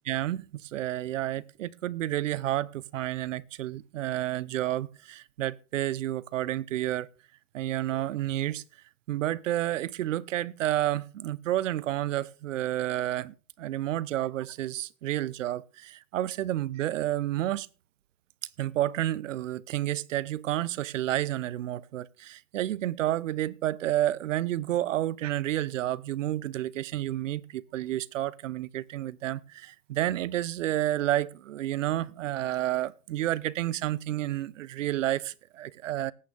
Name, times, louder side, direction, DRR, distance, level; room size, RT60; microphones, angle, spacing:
voice 1, 0.1-7.1 7.5-8.6 9.1-17.7 18.6-36.1, right 13 dB, 65° right, 0.7 m, -30 dB
18.0 x 8.6 x 3.4 m
hypercardioid pair, 160°, 41 cm